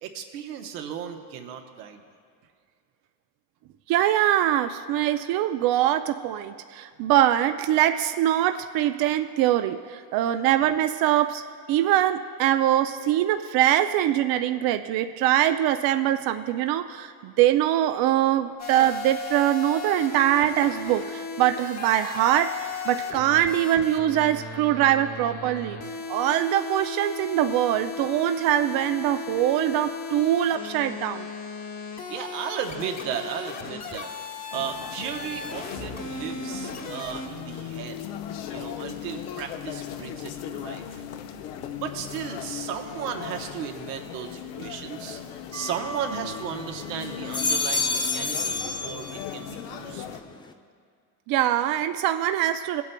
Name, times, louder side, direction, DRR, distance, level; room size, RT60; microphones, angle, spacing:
voice 1, 0.0-2.0 18.1-18.2 32.1-34.1 34.5-38.0 38.5-41.0 41.8-45.2 45.5-50.1, right 8 dB, 80° right, 5 dB, 1.0 m, -35 dB
voice 2, 3.9-11.4 11.7-25.8 26.1-31.3 51.3-52.8, right 12 dB, 50° right, 8 dB, 0.5 m, -23 dB
sound 1, 18.6-37.3, left 4 dB, 35° left, 1.3 m, -36 dB
sound 2, 34.5-50.2, left 9 dB, 75° left, 0.8 m, -38 dB
sound 3, 45.5-46.7 47.1-49.5 49.9-50.5, left 3 dB, 10° left, 0.4 m, -30 dB
18.0 x 8.4 x 2.2 m, 2.2 s
supercardioid pair, 85°, 47 cm